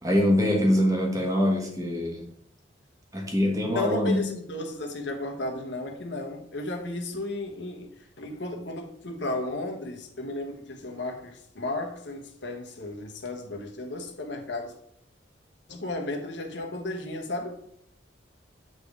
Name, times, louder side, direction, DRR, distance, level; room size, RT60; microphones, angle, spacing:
voice 1, 0.0-2.3 3.1-4.3, left 1 dB, 20° right, 1 dB, 1.3 m, -24 dB
voice 2, 3.7-14.7 15.7-17.6, left 2 dB, 75° left, 3 dB, 1.2 m, -34 dB
8.6 x 4.0 x 3.7 m, 0.72 s
head